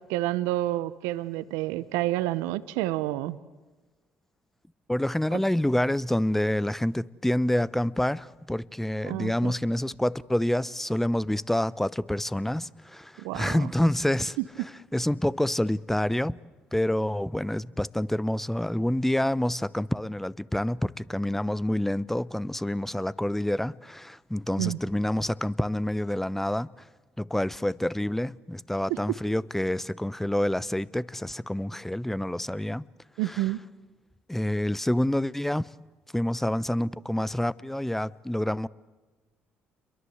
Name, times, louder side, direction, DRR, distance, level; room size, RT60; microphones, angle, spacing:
voice 1, 0.1-3.4 9.1-9.5 13.2-13.6 24.6-24.8 28.9-29.0 33.2-33.6, right 16 dB, 80° right, 0.9 m, -29 dB
voice 2, 4.9-14.4 14.9-16.4 16.7-26.9 27.2-32.8 33.3-33.4 34.3-35.7 36.1-38.7, left 1 dB, 5° left, 0.9 m, -27 dB
30.0 x 22.5 x 8.0 m
hypercardioid pair, 60°, 5 cm